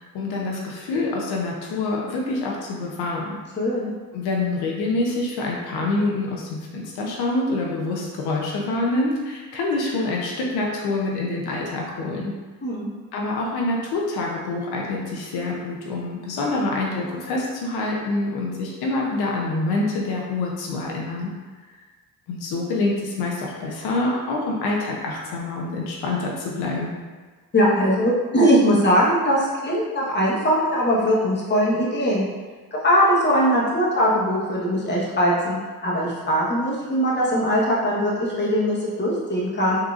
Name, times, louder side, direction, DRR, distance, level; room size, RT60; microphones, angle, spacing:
voice 1, 0.0-3.4 4.1-12.3 13.1-21.3 22.3-26.9, left 2 dB, 80° left, -2 dB, 0.6 m, -26 dB
voice 2, 3.6-3.9 12.6-12.9 27.5-32.3 32.8-35.6 35.8-39.8, equal, 30° left, -5 dB, 1.0 m, -20 dB
3.7 x 2.8 x 2.4 m, 1.4 s
cardioid pair, 75°, 38 cm